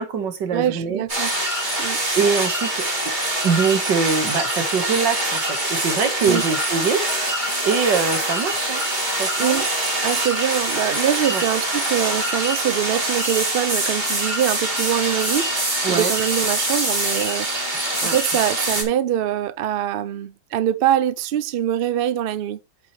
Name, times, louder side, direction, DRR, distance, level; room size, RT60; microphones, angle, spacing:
voice 1, 0.0-1.0 2.1-2.9 3.4-8.8 9.2-9.6 11.3-11.4 15.8-16.1 18.0-18.2, right 5 dB, 90° right, 2.3 m, -23 dB
voice 2, 0.5-1.4 1.8-2.0 6.2-6.4 9.4-9.7 10.0-15.5 15.9-17.5 18.0-22.6, right 10 dB, 65° right, 0.5 m, -23 dB
sound 1, 1.1-18.8, right 1 dB, 25° right, 3.4 m, -24 dB
8.9 x 7.2 x 3.3 m
omnidirectional pair, 1.9 m